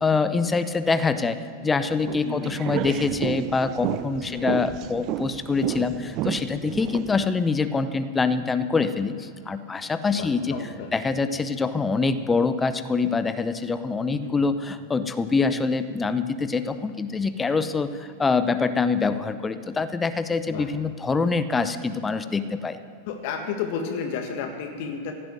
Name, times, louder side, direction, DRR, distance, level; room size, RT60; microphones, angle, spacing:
voice 1, 0.0-10.6 10.9-22.8, left 4 dB, 15° left, 11 dB, 0.7 m, -25 dB
sound 1, 2.0-7.3, right 15 dB, 40° right, 0.5 m, -31 dB
voice 2, 2.2-2.5 4.3-4.6 10.1-10.9 14.1-14.3 20.5-20.7 23.1-25.1, left 6 dB, 50° left, 4 dB, 1.8 m, -32 dB
16.0 x 7.7 x 9.3 m, 2.6 s
figure-of-eight pair, 90°, 0 cm